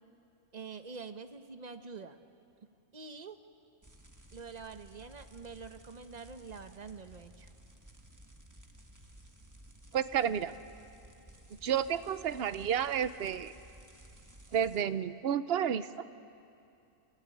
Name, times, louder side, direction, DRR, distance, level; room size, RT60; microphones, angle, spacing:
voice 1, 0.5-2.2 2.9-3.4 4.3-7.5, right 5 dB, 35° right, 8 dB, 1.0 m, -46 dB
sound 1, 3.8-14.8, right 1 dB, 15° right, 1.3 m, -56 dB
voice 2, 9.9-10.5 11.6-13.5 14.5-15.9, right 8 dB, 55° right, 13 dB, 0.9 m, -31 dB
28.5 x 15.0 x 10.0 m, 2.6 s
omnidirectional pair, 1.4 m